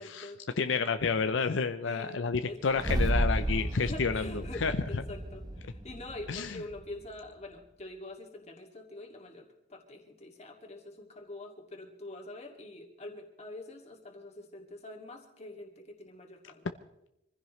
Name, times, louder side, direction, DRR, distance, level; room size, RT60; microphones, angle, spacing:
voice 1, 0.0-0.4 1.8-3.1 3.8-16.7, left 2 dB, 35° left, 2 dB, 2.4 m, -45 dB
voice 2, 0.6-4.2 4.6-4.7 6.3-6.6, left 5 dB, 80° left, 9 dB, 0.6 m, -29 dB
sound 1, 2.8-7.1, right 1 dB, 20° right, 0.8 m, -32 dB
25.5 x 15.5 x 3.2 m, 0.86 s
head